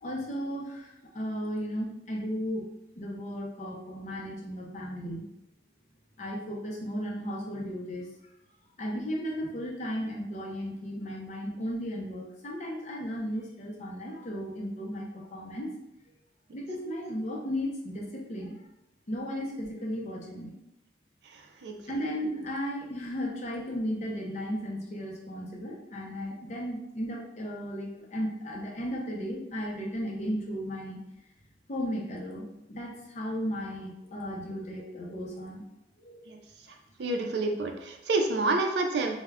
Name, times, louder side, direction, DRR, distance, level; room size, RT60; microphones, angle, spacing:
voice 1, 0.0-2.6 3.0-5.2 6.2-8.1 8.8-15.7 16.5-18.6 19.1-20.6 21.9-31.0 31.7-35.6 36.0-36.2, equal, 40° left, -2 dB, 0.5 m, -35 dB
voice 2, 21.3-21.7 36.3-36.4 37.0-39.2, right 2 dB, 65° right, 4 dB, 0.4 m, -28 dB
2.2 x 2.1 x 3.4 m, 0.86 s
head